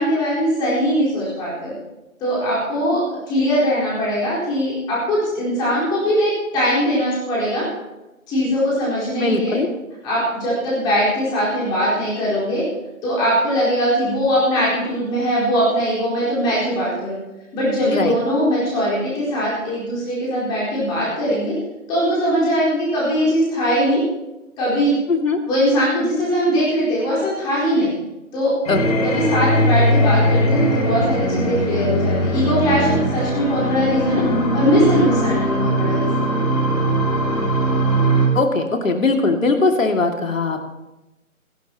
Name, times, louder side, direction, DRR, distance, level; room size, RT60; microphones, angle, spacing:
voice 1, 0.0-1.7 2.2-3.0 3.3-7.6 8.3-9.6 10.0-12.6 13.0-17.2 17.5-21.5 21.9-24.0 24.6-24.9 25.5-27.9 28.3-28.5 29.0-34.2 34.5-36.4, equal, 10° left, -8 dB, 4.4 m, -20 dB
voice 2, 9.2-9.7 17.8-18.2 25.1-25.4 28.7-29.0 38.3-40.6, left 3 dB, 65° left, 4 dB, 2.5 m, -20 dB
sound 1, 28.6-38.3, equal, 25° left, 2.6 m, -19 dB
29.0 x 12.0 x 3.0 m, 1.0 s
figure-of-eight pair, 160°, 43 cm